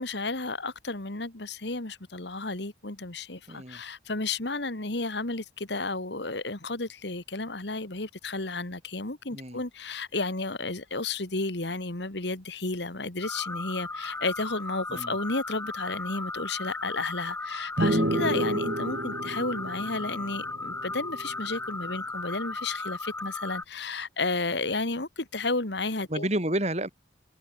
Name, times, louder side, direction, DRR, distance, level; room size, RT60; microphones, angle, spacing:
voice 1, 0.0-26.3, left 3 dB, 65° left, 2.2 m, -32 dB
voice 2, 3.5-3.8 9.3-9.6 14.9-15.2 26.1-26.9, right 1 dB, 35° right, 3.7 m, -30 dB
sound 1, 13.2-23.6, left 3 dB, 10° left, 5.6 m, -36 dB
sound 2, 17.8-21.3, right 1 dB, 55° right, 1.8 m, -30 dB
head